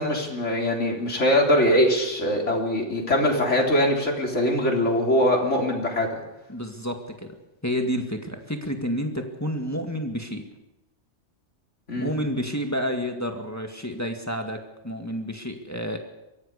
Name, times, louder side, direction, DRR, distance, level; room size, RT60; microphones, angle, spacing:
voice 1, 0.0-6.1 11.9-12.1, left 1 dB, 80° left, 0 dB, 4.0 m, -22 dB
voice 2, 6.5-7.4 7.6-10.5 12.0-16.0, equal, 15° left, 4 dB, 2.0 m, -30 dB
23.5 x 16.5 x 6.8 m, 0.94 s
omnidirectional pair, 1.2 m